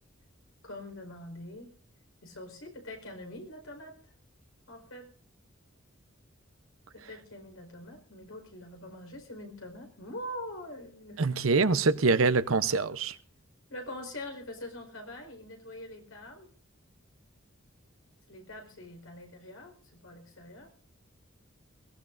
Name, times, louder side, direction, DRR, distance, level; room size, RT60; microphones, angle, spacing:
voice 1, 0.6-1.7 2.2-4.1 4.7-5.1 6.9-11.2 13.7-16.5 18.3-20.7, left 1 dB, 80° left, 3 dB, 4.9 m, -44 dB
voice 2, 11.2-13.2, right 4 dB, 85° right, 13 dB, 0.8 m, -25 dB
22.0 x 18.0 x 2.6 m, 0.43 s
head